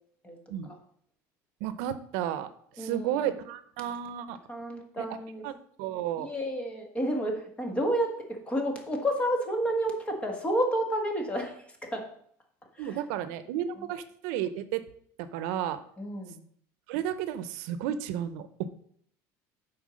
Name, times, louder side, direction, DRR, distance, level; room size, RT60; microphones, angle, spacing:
voice 1, 1.6-2.5 2.8-4.4 5.0-5.1 5.4-5.5 5.8-6.3 12.8-14.8 15.2-15.8 16.9-18.7, right 10 dB, 80° right, 12 dB, 0.7 m, -32 dB
voice 2, 2.8-3.2 4.5-5.4 6.2-8.1 8.4-11.5 11.8-12.0 12.8-13.0 13.8-13.9 16.0-16.4, right 1 dB, 15° left, 3 dB, 1.7 m, -30 dB
8.3 x 4.5 x 6.3 m, 0.63 s
cardioid pair, 155°, 8 cm